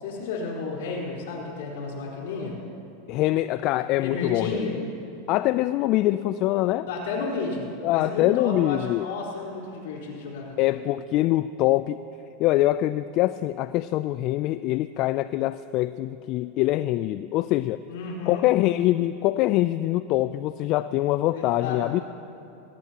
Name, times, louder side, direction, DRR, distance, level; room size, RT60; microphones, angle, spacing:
voice 1, 0.0-2.6 4.0-4.8 6.9-10.8 17.9-18.4 21.3-21.8, left 4 dB, 75° left, -3 dB, 4.3 m, -32 dB
voice 2, 3.1-4.6 5.3-6.9 7.8-9.1 10.6-12.0 12.4-17.8 18.3-22.0, left 15 dB, 50° left, 14 dB, 0.3 m, -24 dB
21.0 x 18.0 x 2.9 m, 2.9 s
hypercardioid pair, 105°, 0 cm